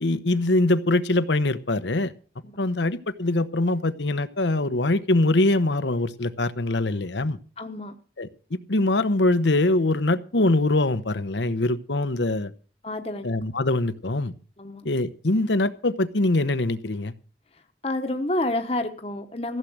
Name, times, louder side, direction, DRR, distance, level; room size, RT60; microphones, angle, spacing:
voice 1, 0.0-2.1 2.6-7.4 8.2-8.3 8.7-12.5 13.2-14.3 14.8-17.1, left 2 dB, 85° left, 13 dB, 1.0 m, -23 dB
voice 2, 7.6-7.9 12.8-13.3 14.6-14.9 17.5-19.6, left 1 dB, 35° left, 6 dB, 1.0 m, -29 dB
15.5 x 7.5 x 8.0 m, 0.40 s
head